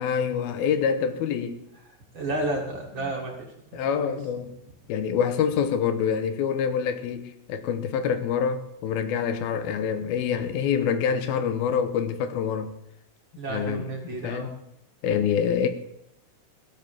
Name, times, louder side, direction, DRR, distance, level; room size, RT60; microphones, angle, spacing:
voice 1, 0.0-1.6 3.0-3.1 3.7-4.6 4.9-12.7 13.5-14.6 15.0-15.7, left 7 dB, 90° left, 3.0 m, -26 dB
voice 2, 2.1-4.1 13.3-14.5, right 2 dB, 35° right, 2.6 m, -32 dB
17.5 x 7.4 x 7.4 m
omnidirectional pair, 4.2 m